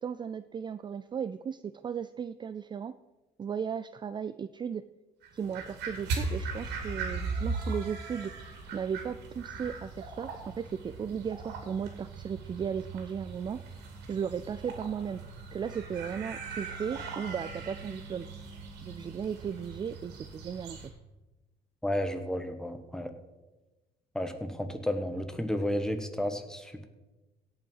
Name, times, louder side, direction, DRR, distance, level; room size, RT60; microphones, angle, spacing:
voice 1, 0.0-2.9 3.4-4.8 5.3-8.3 8.7-13.6 14.1-15.2 15.5-18.3 18.8-20.9, right 7 dB, 25° right, 14 dB, 0.3 m, -36 dB
sound 1, 5.2-20.9, right 3 dB, 85° right, 2.6 m, -39 dB
voice 2, 21.8-23.1 24.1-26.8, left 1 dB, 5° left, 7 dB, 1.2 m, -32 dB
17.0 x 5.7 x 5.5 m, 1.1 s
cardioid pair, 110°, 17 cm